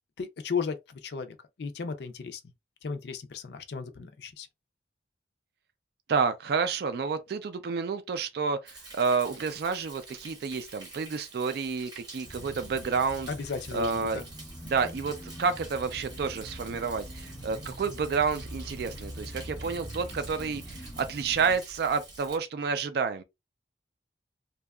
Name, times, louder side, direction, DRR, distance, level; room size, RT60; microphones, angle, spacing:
voice 1, 0.2-2.4 2.8-4.5 13.3-14.2, left 5 dB, 65° left, 0.4 m, -35 dB
voice 2, 6.1-13.3 13.7-14.2 14.6-23.2, right 5 dB, 60° right, 0.3 m, -29 dB
Thunder, 8.7-22.4, right 3 dB, 20° right, 0.8 m, -48 dB
sound 1, 12.2-21.6, equal, 10° left, 0.6 m, -43 dB
2.7 x 2.3 x 2.2 m
head